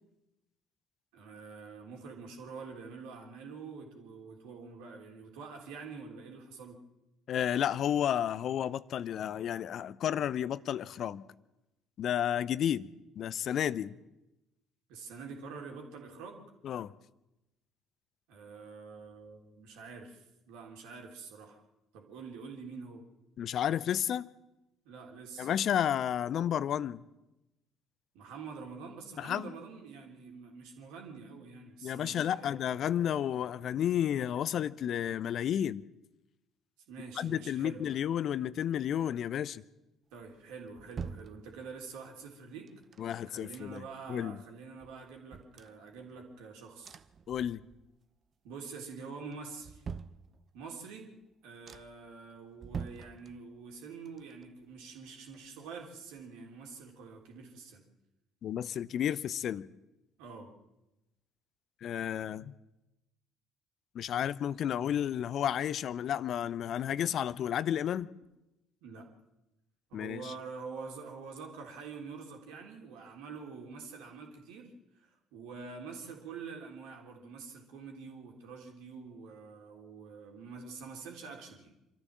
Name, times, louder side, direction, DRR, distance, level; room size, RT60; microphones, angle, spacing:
voice 1, 1.1-6.8 14.9-16.5 18.3-21.6 21.9-23.0 24.9-25.5 28.1-32.6 36.9-37.9 40.1-42.7 43.2-47.0 48.4-49.8 50.5-51.1 51.4-57.8 60.2-60.5 68.8-69.1 69.9-74.7 75.0-81.7, right 5 dB, 65° right, 3.4 m, -46 dB
voice 2, 7.3-11.2 12.0-12.9 13.2-13.9 16.6-16.9 23.4-24.3 25.4-27.0 29.2-29.5 31.8-35.8 37.2-39.6 43.0-43.8 44.1-44.4 47.3-47.6 58.4-59.7 61.8-62.5 63.9-68.1 69.9-70.3, left 10 dB, 50° left, 0.7 m, -32 dB
sound 1, 40.2-42.0 42.7-44.1 44.4-44.5 44.8-46.4 46.8-48.0 48.3-48.8 49.3-50.8 51.2-51.3 51.6-52.1 52.5-53.8 54.0-55.9 56.2-56.3, right 6 dB, 40° right, 0.9 m, -46 dB
26.5 x 13.5 x 7.4 m
figure-of-eight pair, 50°, 0 cm